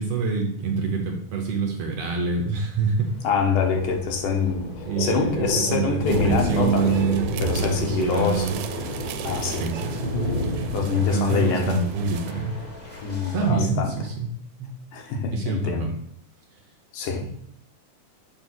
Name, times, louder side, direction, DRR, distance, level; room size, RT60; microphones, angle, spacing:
voice 1, 0.0-3.1 4.8-8.6 9.6-10.1 10.9-12.5 13.3-14.3 14.6-14.7 15.3-15.9, right 4 dB, 65° right, 2 dB, 1.8 m, -26 dB
Thunder, 3.0-13.0, left 1 dB, 45° left, 1.2 m, -31 dB
voice 2, 3.2-4.7 5.0-7.0 7.4-8.6 8.9-9.7 10.7-11.8 13.0-14.0 14.9-15.9 16.9-17.3, left 5 dB, 80° left, 2 dB, 2.6 m, -25 dB
sound 1, 6.1-12.3, right 10 dB, 90° right, 2.2 m, -37 dB
sound 2, 7.4-13.5, left 2 dB, 20° left, 1.0 m, -43 dB
7.1 x 3.5 x 6.1 m, 0.67 s
omnidirectional pair, 3.7 m